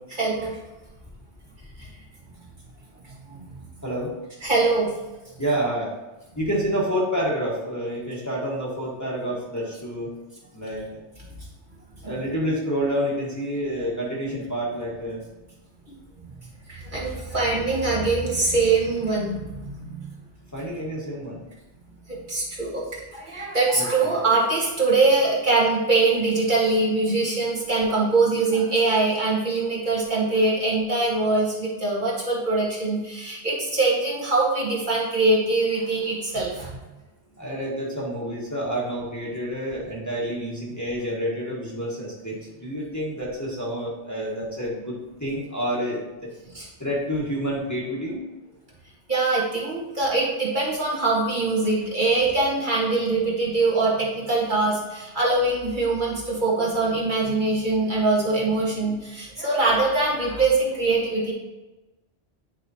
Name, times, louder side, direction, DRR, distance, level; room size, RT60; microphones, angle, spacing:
voice 1, 0.2-0.6 1.8-1.9 3.0-3.4 4.4-4.9 12.0-12.2 16.7-20.1 22.1-36.8 46.5-46.7 49.1-61.3, right 3 dB, 45° right, -5 dB, 1.7 m, -23 dB
voice 2, 5.4-5.9 6.3-10.1 10.5-11.0 12.0-15.2 20.5-21.4 23.8-24.1 37.4-46.3 46.8-48.2, equal, 15° left, -6 dB, 1.4 m, -28 dB
9.3 x 4.8 x 2.8 m, 1.1 s
omnidirectional pair, 1.1 m